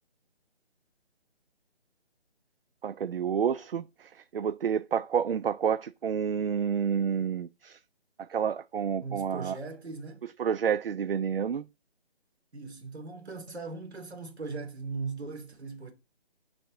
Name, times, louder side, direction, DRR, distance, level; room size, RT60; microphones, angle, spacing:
voice 1, 2.8-7.8 8.2-9.5 10.2-11.7, right 7 dB, 60° right, 0.5 m, -29 dB
voice 2, 9.0-10.2 12.5-15.9, right 4 dB, 80° right, 2.5 m, -39 dB
6.5 x 6.3 x 3.7 m
figure-of-eight pair, 155°, 32 cm